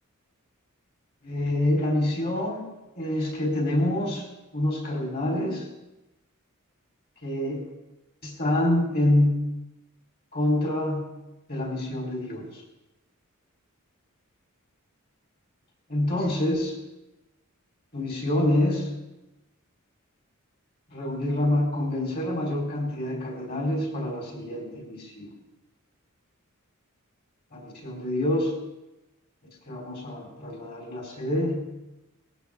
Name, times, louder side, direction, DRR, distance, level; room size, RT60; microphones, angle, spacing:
voice 1, 1.2-2.6 3.0-4.3 4.5-5.7 7.2-7.6 8.2-9.4 10.3-11.1 11.5-12.6 15.9-16.8 17.9-18.9 20.9-25.3 27.5-28.5 29.7-31.7, left 1 dB, 45° left, 0 dB, 4.2 m, -26 dB
19.0 x 15.0 x 3.7 m, 0.99 s
head